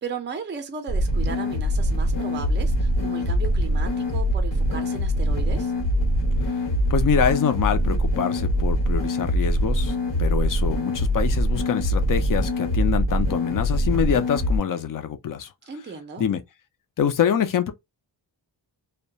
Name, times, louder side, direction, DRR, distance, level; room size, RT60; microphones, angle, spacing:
voice 1, 0.0-5.7 15.7-16.3, right 5 dB, 25° right, 0.5 m, -35 dB
sound 1, 0.9-14.6, equal, 65° left, 1.0 m, -23 dB
voice 2, 6.9-15.5 16.2-16.4 17.0-17.7, left 8 dB, 45° left, 0.5 m, -25 dB
2.2 x 2.2 x 2.7 m
wide cardioid pair, 130°, 46 cm